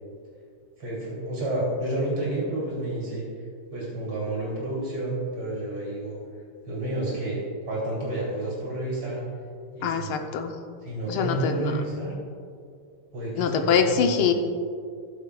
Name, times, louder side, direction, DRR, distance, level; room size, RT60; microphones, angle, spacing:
voice 1, 0.8-3.2 3.7-6.2 6.7-7.4 7.7-9.2 9.7-10.1 10.8-12.1 13.1-14.3, right 1 dB, 70° right, -5 dB, 3.4 m, -30 dB
voice 2, 9.8-10.6 11.1-11.8 13.4-14.3, left 6 dB, 85° left, 5 dB, 1.6 m, -24 dB
17.0 x 7.3 x 2.3 m, 2.3 s
omnidirectional pair, 2.3 m